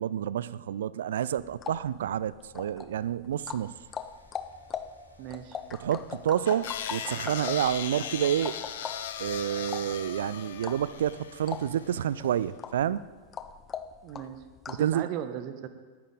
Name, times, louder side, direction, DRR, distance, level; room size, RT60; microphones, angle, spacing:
voice 1, 0.0-3.7 5.8-8.6 9.2-13.0 14.8-15.1, right 10 dB, 60° right, 19 dB, 0.3 m, -29 dB
sound 1, 1.4-15.0, left 7 dB, 20° left, 0.6 m, -41 dB
sound 2, 3.6-12.5, right 1 dB, 85° left, 1.5 m, -58 dB
voice 2, 5.2-5.6 14.0-15.7, right 10 dB, 40° right, 11 dB, 1.0 m, -37 dB
sound 3, 6.5-11.8, left 9 dB, 60° left, 0.9 m, -38 dB
19.0 x 10.5 x 3.9 m, 1.5 s
figure-of-eight pair, 90°, 0 cm